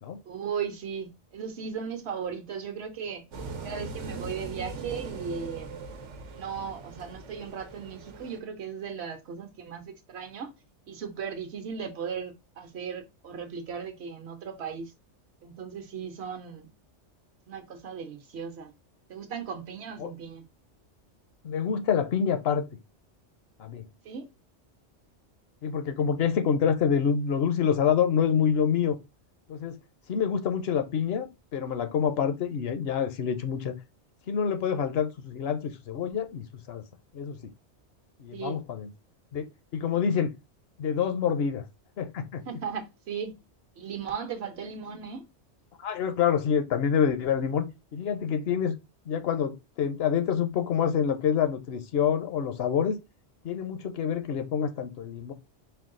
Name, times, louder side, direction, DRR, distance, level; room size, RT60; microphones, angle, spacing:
voice 1, 0.3-3.2 3.6-5.8 6.3-10.5 10.9-14.9 15.4-16.7 17.5-18.7 19.1-20.4 24.0-24.3 38.3-38.6 42.5-43.4 43.8-45.3, right 6 dB, 70° right, 1.0 m, -37 dB
sound 1, 3.3-8.4, right 4 dB, 90° right, 1.1 m, -40 dB
voice 2, 21.4-22.6 23.6-23.8 25.6-29.0 29.5-29.7 30.1-33.7 34.3-36.8 37.1-37.4 38.2-38.9 39.3-39.4 39.7-40.3 40.8-41.6 42.0-42.4 45.8-47.7 47.9-48.7 49.1-53.0 53.4-55.3, left 7 dB, 65° left, 0.8 m, -27 dB
4.5 x 2.3 x 3.6 m
omnidirectional pair, 1.2 m